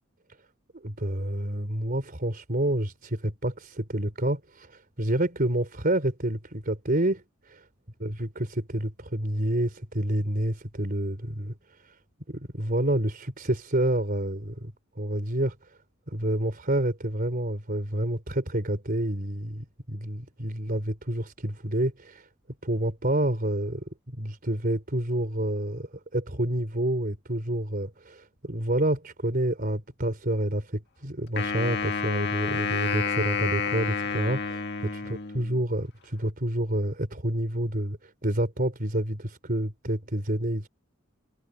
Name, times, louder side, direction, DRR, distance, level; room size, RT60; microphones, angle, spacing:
voice 1, 0.8-4.7 5.0-7.2 7.5-7.6 8.0-11.5 12.3-14.7 15.0-15.6 16.1-22.2 22.6-23.8 24.2-35.0 35.3-40.7, right 1 dB, 45° right, 3.8 m, -28 dB
Wind instrument woodwind instrument, 31.4-35.6, left 5 dB, 55° left, 1.7 m, -29 dB
head